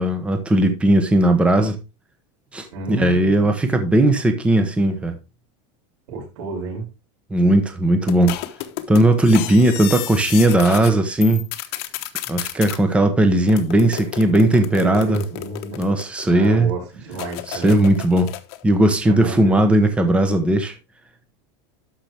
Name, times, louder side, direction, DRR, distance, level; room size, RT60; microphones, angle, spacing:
voice 1, 0.0-1.8 2.5-5.2 7.3-8.4 8.9-11.4 12.3-15.2 15.8-16.7 17.5-18.3 18.6-20.7, right 1 dB, 10° right, 1.0 m, -17 dB
voice 2, 2.7-3.5 6.1-6.8 14.7-15.8 16.2-17.9 19.0-19.6, right 3 dB, 90° right, 6.7 m, -30 dB
sound 1, 8.1-10.9 11.2-12.8 13.5-16.5 17.1-18.6, left 15 dB, 65° left, 1.1 m, -32 dB
12.5 x 5.9 x 3.4 m
supercardioid pair, 155°, 15 cm